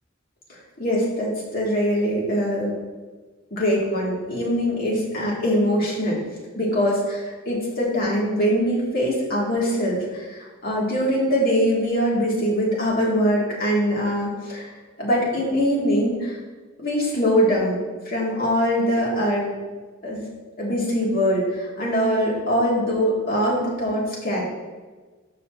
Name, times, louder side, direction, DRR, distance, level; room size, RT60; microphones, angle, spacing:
voice 1, 0.8-2.7 3.5-6.2 6.5-14.7 15.0-16.4 16.8-19.5 20.0-20.3 20.6-24.4, equal, 50° left, -4 dB, 2.5 m, -23 dB
13.5 x 5.3 x 2.8 m, 1.3 s
head